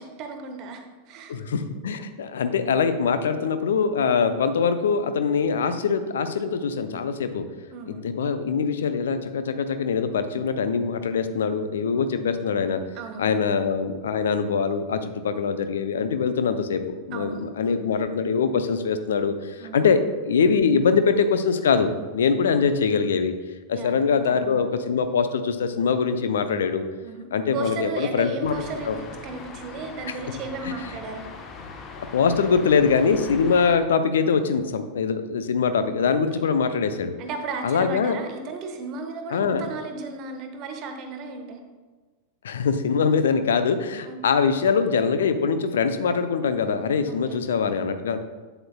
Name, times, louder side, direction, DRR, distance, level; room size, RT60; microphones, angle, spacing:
voice 1, 0.0-1.4 4.1-4.3 7.7-8.0 11.9-12.4 12.9-13.3 17.1-17.9 19.6-19.8 23.7-24.6 27.0-29.0 29.2-31.3 36.1-36.2 37.2-41.6 44.1-44.2 47.1-47.5, right 4 dB, 40° right, 5 dB, 1.0 m, -35 dB
voice 2, 1.3-7.4 7.9-12.8 13.2-20.0 20.3-23.3 23.7-26.8 27.3-29.0 30.1-30.2 30.6-30.7 32.1-37.1 37.6-38.2 39.3-39.7 42.4-48.2, left 5 dB, 65° left, 10 dB, 0.5 m, -23 dB
sound 1, 28.4-33.8, left 4 dB, 30° left, 0.8 m, -40 dB
7.9 x 7.6 x 2.3 m, 1.4 s
figure-of-eight pair, 90°, 0 cm